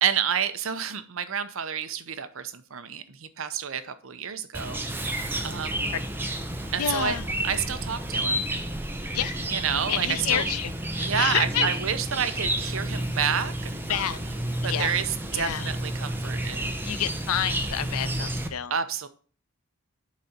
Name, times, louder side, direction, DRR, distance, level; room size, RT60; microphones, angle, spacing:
voice 1, 0.0-4.8 5.4-5.9 6.7-7.2 7.4-8.5 9.5-10.4 11.0-13.5 13.9-14.2 14.6-16.7 18.7-19.1, right 7 dB, 65° right, 11 dB, 0.7 m, -29 dB
Chirp tweet, 4.5-18.5, right 1 dB, 10° right, 0.6 m, -31 dB
voice 2, 6.8-7.3 9.1-9.4 9.9-11.7 13.9-14.2 14.6-14.9 15.3-15.7 16.8-18.7, left 9 dB, 90° left, 15 dB, 0.6 m, -29 dB
10.5 x 4.1 x 4.3 m, 0.41 s
head